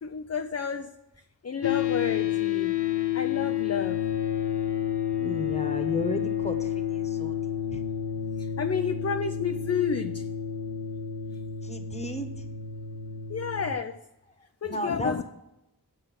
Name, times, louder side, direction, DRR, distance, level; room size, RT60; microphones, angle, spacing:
voice 1, 0.0-0.9 1.4-2.8 3.1-4.0 8.4-10.3 13.3-14.0 14.6-15.2, left 6 dB, 40° left, 7 dB, 0.6 m, -30 dB
sound 1, 1.6-13.7, left 10 dB, 75° left, 0.8 m, -30 dB
voice 2, 5.2-7.3 7.7-7.8 11.6-12.3 14.6-15.2, left 1 dB, 15° left, 6 dB, 1.3 m, -34 dB
8.0 x 5.2 x 7.1 m, 0.88 s
cardioid pair, 40°, 40 cm